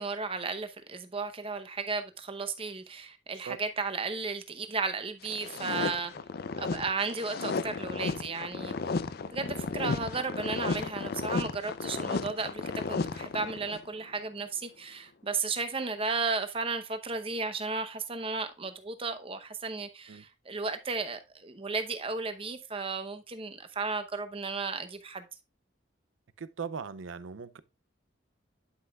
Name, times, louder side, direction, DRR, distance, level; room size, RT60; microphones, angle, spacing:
voice 1, 0.0-6.1 6.6-8.7 9.3-25.3, right 4 dB, 30° right, 0.8 m, -34 dB
sound 1, 5.2-13.8, left 4 dB, 55° left, 0.4 m, -34 dB
voice 2, 26.4-27.6, right 6 dB, 90° right, 0.5 m, -39 dB
11.0 x 5.6 x 2.3 m
head